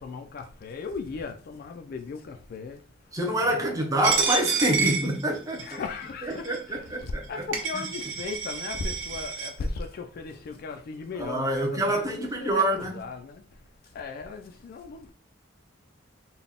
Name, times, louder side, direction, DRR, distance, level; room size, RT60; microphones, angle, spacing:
voice 1, 0.0-2.8 3.4-3.9 5.6-13.4 13.8-15.1, left 4 dB, 50° left, 0.3 m, -37 dB
voice 2, 3.1-5.8 6.2-7.3 11.2-13.0, right 1 dB, 20° right, 0.7 m, -26 dB
Coin (dropping), 4.0-5.8 6.4-6.6 7.2-7.3 7.5-9.5, right 5 dB, 80° right, 0.8 m, -28 dB
3.9 x 2.2 x 3.5 m
head